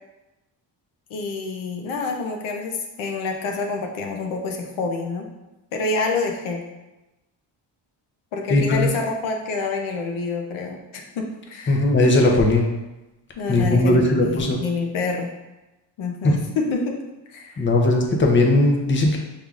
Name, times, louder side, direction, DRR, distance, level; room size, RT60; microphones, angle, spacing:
voice 1, 1.1-5.3 5.7-6.6 8.3-11.8 13.4-15.3 16.0-17.0 17.3-17.7, left 4 dB, 90° left, 1 dB, 0.8 m, -27 dB
voice 2, 8.5-8.9 11.7-12.7 13.5-14.6 16.2-16.3 17.6-19.2, left 2 dB, 25° left, 1 dB, 0.7 m, -18 dB
5.4 x 3.4 x 2.4 m, 1.0 s
cardioid pair, 105°, 46 cm